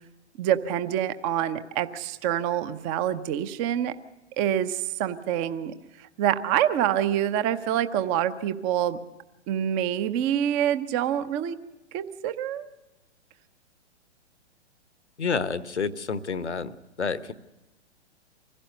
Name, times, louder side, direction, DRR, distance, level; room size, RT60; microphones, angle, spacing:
voice 1, 0.4-3.9 4.4-5.7 6.2-9.0 9.5-11.6 11.9-12.7, right 10 dB, 20° right, 13 dB, 0.7 m, -26 dB
voice 2, 15.2-17.3, left 5 dB, 70° left, 14 dB, 1.1 m, -29 dB
25.0 x 16.5 x 6.6 m, 1.1 s
figure-of-eight pair, 115°, 35 cm